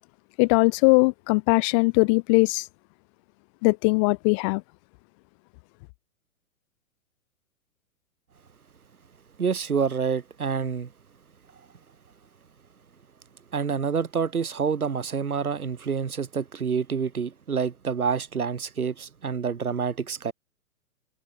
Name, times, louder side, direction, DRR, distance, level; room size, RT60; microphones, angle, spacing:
voice 1, 0.4-2.7 3.6-4.6, left 32 dB, 25° left, 0.5 m, -20 dB
voice 2, 9.4-10.9 13.5-20.3, right 6 dB, 80° right, 3.6 m, -27 dB
figure-of-eight pair, 115°, 43 cm